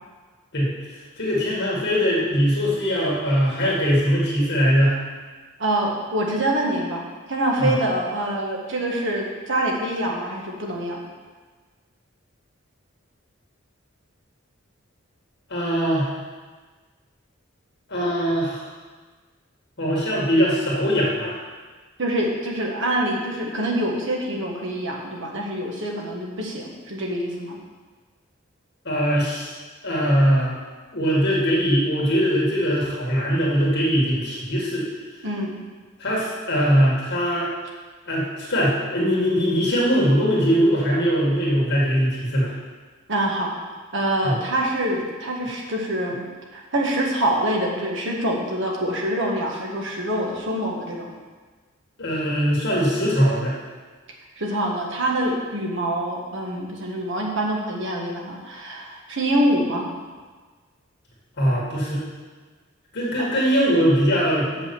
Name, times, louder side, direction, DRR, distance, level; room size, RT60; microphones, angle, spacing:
voice 1, 1.2-5.0 7.6-7.7 15.5-16.2 17.9-18.7 19.8-21.4 28.9-29.5 29.8-30.5 30.9-34.9 36.0-37.5 38.1-42.5 44.2-44.4 52.0-53.6 61.4-62.0 62.9-64.6, equal, 55° left, -4 dB, 1.9 m, -21 dB
voice 2, 5.6-11.0 22.0-27.6 35.2-35.6 43.1-43.6 43.9-46.2 46.5-51.1 54.4-59.9 63.2-63.4, right 1 dB, 65° right, -1 dB, 1.6 m, -25 dB
6.8 x 5.7 x 7.0 m, 1.4 s
head